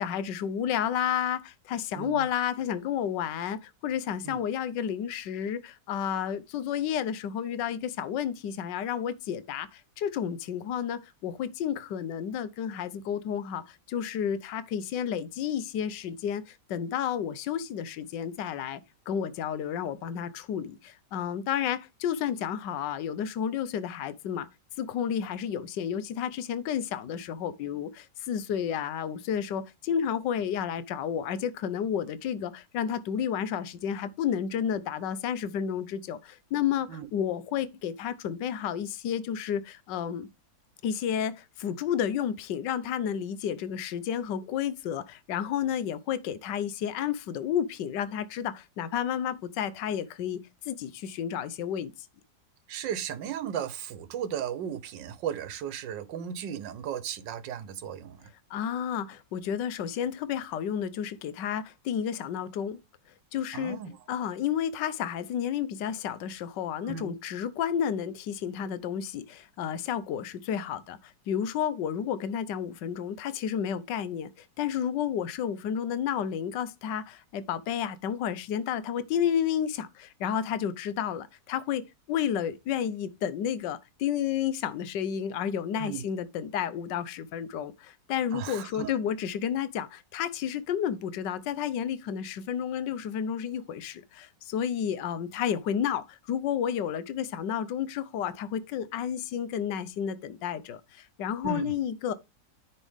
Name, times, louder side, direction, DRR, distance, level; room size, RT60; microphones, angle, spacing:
voice 1, 0.0-18.8 19.1-24.5 24.8-40.3 40.8-50.4 50.6-51.9 58.5-62.8 63.3-63.8 64.1-102.1, left 9 dB, 70° left, 1.4 m, -31 dB
voice 2, 52.7-58.3 63.5-64.0 66.8-67.1 85.8-86.0 88.3-88.9 101.4-101.7, right 8 dB, 75° right, 1.6 m, -35 dB
9.9 x 5.5 x 3.5 m
omnidirectional pair, 2.0 m